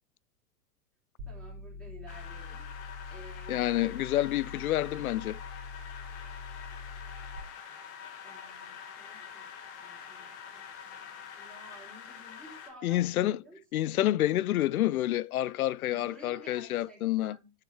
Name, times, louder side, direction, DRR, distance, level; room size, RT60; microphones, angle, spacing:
sound 1, 1.2-7.4, left 5 dB, 45° right, 2.9 m, -44 dB
voice 1, 1.3-2.7 3.1-3.7 7.5-7.7 8.2-9.5 9.8-13.9 15.9-17.5, right 1 dB, ahead, 3.0 m, -53 dB
sound 2, 2.1-12.7, left 7 dB, 45° left, 1.9 m, -46 dB
voice 2, 3.5-5.4 12.8-13.4 13.7-17.4, left 14 dB, 65° left, 0.5 m, -28 dB
10.0 x 6.6 x 3.1 m
figure-of-eight pair, 105°, 46 cm